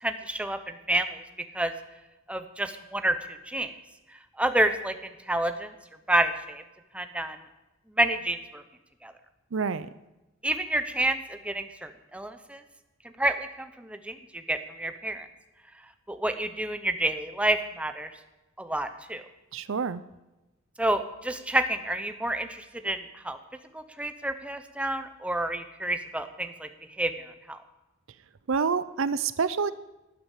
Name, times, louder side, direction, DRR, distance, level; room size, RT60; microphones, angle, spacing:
voice 1, 0.0-1.2 1.5-1.7 2.3-3.2 3.5-3.7 4.4-5.7 6.1-6.6 6.9-7.4 8.0-8.6 9.0-9.1 10.4-12.6 13.2-14.2 14.5-15.3 16.1-18.1 18.6-19.2 20.8-23.4 23.7-26.7 27.0-27.6, right 1 dB, 5° right, 8 dB, 0.8 m, -29 dB
voice 2, 9.5-9.9 19.5-20.0 28.5-29.7, right 5 dB, 65° right, 15 dB, 0.5 m, -27 dB
13.0 x 9.0 x 8.2 m, 1.0 s
head